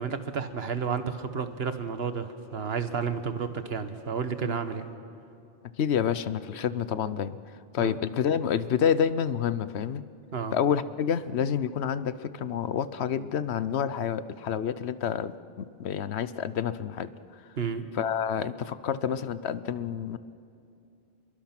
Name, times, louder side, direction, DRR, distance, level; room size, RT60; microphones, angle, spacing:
voice 1, 0.0-4.9 7.8-8.0 10.3-10.5 17.6-17.9, right 6 dB, 70° right, 10 dB, 1.4 m, -31 dB
voice 2, 5.8-7.4 7.7-10.0 10.5-17.1 17.9-20.2, left 8 dB, 85° left, 14 dB, 1.0 m, -28 dB
26.5 x 22.5 x 6.0 m, 2.5 s
omnidirectional pair, 1.1 m